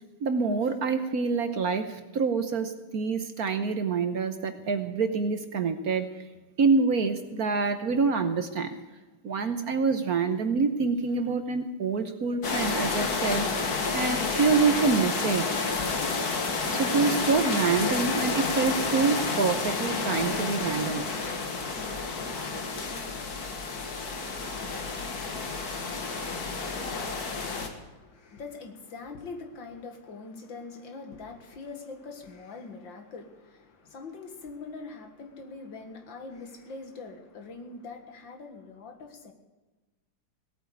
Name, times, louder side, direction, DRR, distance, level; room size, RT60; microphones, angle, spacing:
voice 1, 0.2-6.1 6.6-8.8 9.2-13.4 13.9-15.6 16.7-21.0, right 4 dB, 55° right, 9 dB, 1.2 m, -26 dB
sound 1, 12.4-27.7, left 4 dB, 50° left, 2.1 m, -30 dB
voice 2, 27.5-39.3, left 4 dB, 70° left, 5 dB, 2.4 m, -43 dB
18.0 x 9.0 x 8.1 m, 1.2 s
omnidirectional pair, 2.2 m